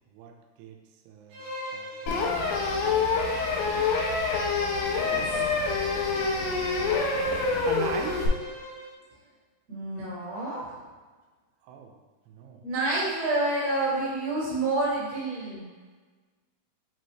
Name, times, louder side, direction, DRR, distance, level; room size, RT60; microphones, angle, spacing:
voice 1, 0.1-0.8 1.1-3.0 4.9-5.7 7.1-8.3 11.6-11.9 12.3-12.6, right 7 dB, 85° right, 3 dB, 2.6 m, -41 dB
Bowed string instrument, 1.3-9.0, equal, 70° right, 1.9 m, -40 dB
sound 1, 2.1-8.3, left 4 dB, 80° left, 2.0 m, -26 dB
voice 2, 9.7-10.8 12.6-15.7, right 2 dB, 55° right, -8 dB, 2.2 m, -28 dB
6.0 x 2.7 x 3.1 m, 1.4 s
omnidirectional pair, 4.6 m